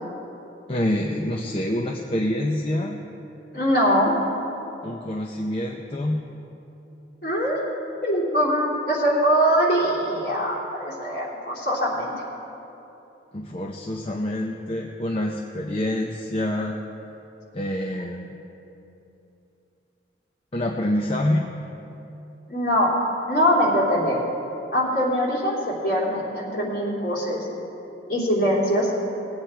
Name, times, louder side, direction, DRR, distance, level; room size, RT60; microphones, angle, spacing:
voice 1, 0.7-3.0 4.8-6.2 13.3-16.8 17.5-18.3 20.5-21.5, left 1 dB, 30° left, 0 dB, 0.7 m, -26 dB
voice 2, 3.5-4.1 7.2-7.6 8.0-12.1 22.5-22.9 23.3-24.2 24.7-27.4 28.1-28.9, equal, 50° left, -6 dB, 3.3 m, -22 dB
19.0 x 8.8 x 4.5 m, 2.9 s
head